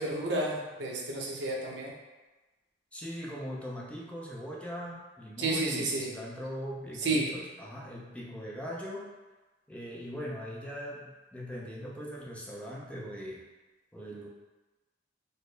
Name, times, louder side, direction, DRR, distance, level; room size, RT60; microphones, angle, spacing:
voice 1, 0.0-1.9 5.4-6.1 7.0-7.2, right 2 dB, 75° right, -2 dB, 0.7 m, -31 dB
voice 2, 2.9-9.1 9.7-13.5 13.9-14.3, equal, 5° left, -4 dB, 0.5 m, -40 dB
4.2 x 2.0 x 3.2 m, 1.2 s
head